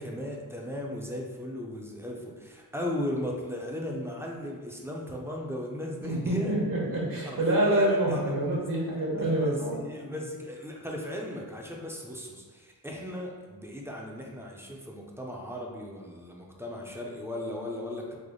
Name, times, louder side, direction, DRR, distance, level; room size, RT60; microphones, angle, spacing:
voice 1, 0.0-6.6 7.2-8.6 9.2-18.1, left 1 dB, 5° right, -1 dB, 0.5 m, -36 dB
voice 2, 6.0-9.9, right 1 dB, 65° right, -5 dB, 1.0 m, -27 dB
3.3 x 2.0 x 3.7 m, 1.4 s
wide cardioid pair, 75°, 37 cm